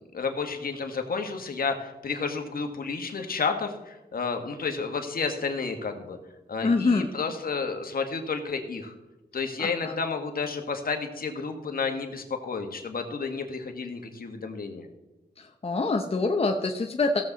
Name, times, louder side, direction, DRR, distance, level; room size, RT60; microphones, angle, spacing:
voice 1, 0.1-6.2 6.5-8.9 9.3-14.9, left 4 dB, 65° left, 5 dB, 1.5 m, -31 dB
voice 2, 6.6-7.1 9.6-10.0 15.4-17.2, left 3 dB, 40° left, 3 dB, 0.8 m, -25 dB
16.0 x 7.5 x 4.0 m, 1.1 s
wide cardioid pair, 90°, 16 cm